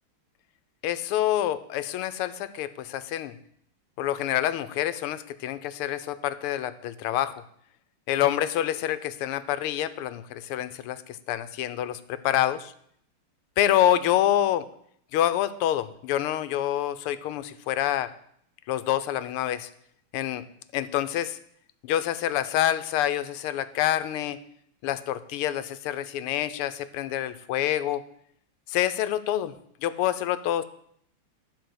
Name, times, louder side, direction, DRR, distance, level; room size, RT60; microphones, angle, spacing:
voice 1, 0.8-3.3 4.0-7.4 8.1-12.7 13.6-14.7 15.1-18.1 18.7-19.7 20.1-20.4 20.7-21.4 21.8-24.4 24.8-28.1 28.7-29.5 29.8-30.6, left 12 dB, 90° left, 13 dB, 1.6 m, -27 dB
12.5 x 4.9 x 7.8 m, 0.68 s
omnidirectional pair, 2.4 m